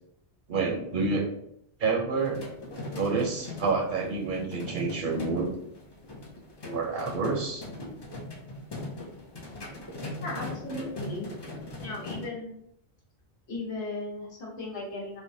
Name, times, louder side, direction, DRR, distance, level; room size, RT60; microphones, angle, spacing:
voice 1, 0.5-1.3 1.8-2.4 3.0-5.5 6.7-7.6, right 4 dB, 55° right, 0 dB, 0.6 m, -28 dB
sound 1, 2.2-12.3, left 2 dB, 45° left, 0.3 m, -40 dB
voice 2, 10.2-11.3 11.8-12.5 13.5-15.2, left 2 dB, 85° left, -3 dB, 1.2 m, -36 dB
3.3 x 2.1 x 2.6 m, 0.74 s
omnidirectional pair, 1.1 m